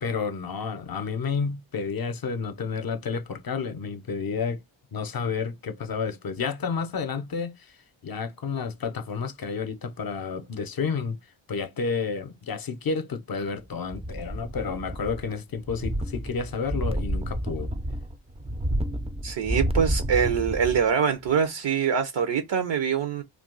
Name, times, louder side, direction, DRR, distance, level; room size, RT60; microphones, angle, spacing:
voice 1, 0.0-4.6 4.9-7.7 8.0-11.2 11.5-17.7, left 5 dB, 45° left, 0.7 m, -30 dB
sound 1, 13.9-15.3 15.6-20.9 21.3-21.4, equal, 15° right, 0.4 m, -30 dB
voice 2, 19.2-23.2, right 7 dB, 60° right, 0.7 m, -24 dB
2.4 x 2.3 x 3.7 m
cardioid pair, 55°, 49 cm